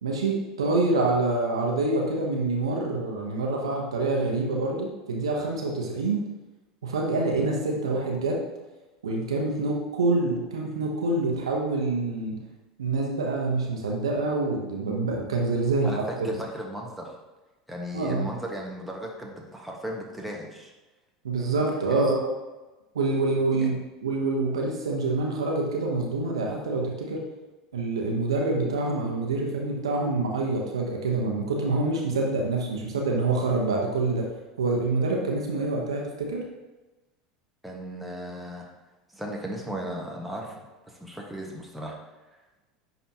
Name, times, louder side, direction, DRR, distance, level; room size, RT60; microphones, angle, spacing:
voice 1, 0.0-6.2 6.8-8.4 9.0-12.4 12.8-15.9 17.9-18.3 21.2-22.3 22.9-23.7 24.0-27.2 27.7-34.3 34.6-36.4, right 3 dB, 85° right, -1 dB, 1.1 m, -26 dB
voice 2, 15.8-17.2 17.7-20.7 21.8-22.1 23.5-23.8 37.6-38.7 39.1-42.0, equal, ahead, -2 dB, 1.5 m, -36 dB
10.0 x 4.0 x 2.9 m, 1.1 s
hypercardioid pair, 80°, 3 cm